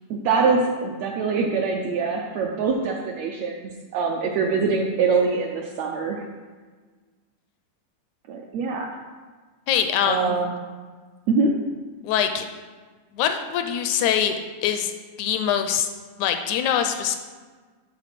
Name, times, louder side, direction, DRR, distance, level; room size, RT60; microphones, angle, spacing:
voice 1, 0.1-6.2 8.3-9.0 10.0-10.5 11.3-11.5, right 4 dB, 80° right, 1 dB, 1.5 m, -24 dB
voice 2, 9.7-10.4 12.0-12.5 13.1-14.9 15.2-15.9 16.2-17.2, left 9 dB, 80° left, 7 dB, 1.7 m, -23 dB
11.0 x 3.9 x 5.9 m, 1.4 s
omnidirectional pair, 3.7 m